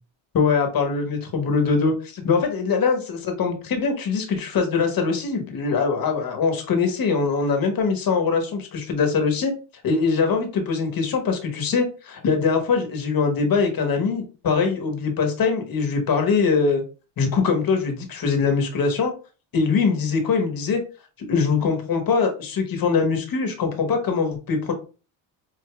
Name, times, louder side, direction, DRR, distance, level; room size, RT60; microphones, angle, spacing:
voice 1, 0.3-9.5 9.8-16.8 17.2-19.1 19.5-20.8 21.3-24.7, left 5 dB, 45° left, 4 dB, 1.2 m, -22 dB
4.9 x 2.4 x 2.3 m, 0.34 s
cardioid pair, 80°, 47 cm